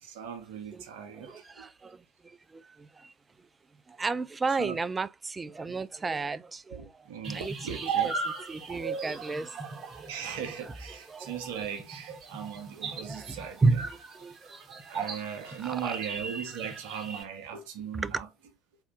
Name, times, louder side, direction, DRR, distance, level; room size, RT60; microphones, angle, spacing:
voice 1, 0.0-1.7 4.6-4.8 6.7-8.1 10.1-13.6 14.9-18.3, right 8 dB, 65° right, 1.0 m, -38 dB
voice 2, 1.1-3.1 3.9-9.9 11.1-11.4 12.9-14.4 14.7-14.8 15.6-16.0 17.9-18.2, right 3 dB, 20° right, 0.4 m, -33 dB
sound 1, 7.2-17.2, right 5 dB, 40° right, 1.2 m, -37 dB
3.9 x 3.4 x 3.4 m
figure-of-eight pair, 60°, 0 cm